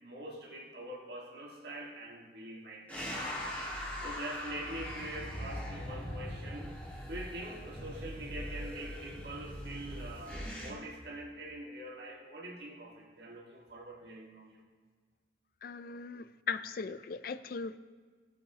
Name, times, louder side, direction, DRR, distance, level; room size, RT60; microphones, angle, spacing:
voice 1, 0.0-3.5 4.0-6.7 7.0-14.7, right 1 dB, 65° right, -2 dB, 1.7 m, -44 dB
sound 1, 2.9-10.7, equal, 10° left, 1.7 m, -41 dB
voice 2, 15.6-17.8, left 5 dB, 55° left, 13 dB, 0.4 m, -38 dB
18.0 x 8.1 x 2.8 m, 1.5 s
head